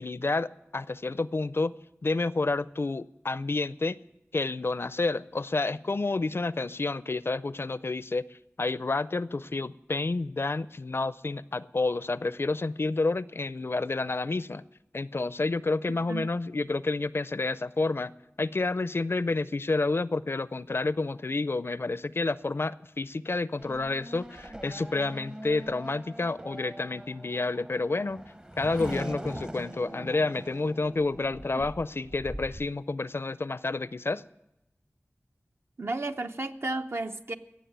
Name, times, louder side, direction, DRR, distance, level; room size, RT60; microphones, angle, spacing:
voice 1, 0.0-1.8 2.0-4.0 4.3-8.2 8.6-14.7 14.9-18.1 18.4-28.2 28.6-34.2, left 3 dB, 55° left, 0.5 m, -29 dB
Race car auto racing / Accelerating revving vroom, 23.6-32.7, right 1 dB, 20° right, 0.8 m, -42 dB
voice 2, 35.8-37.4, right 2 dB, 60° right, 0.8 m, -32 dB
17.0 x 7.4 x 9.3 m
wide cardioid pair, 45°, 5 cm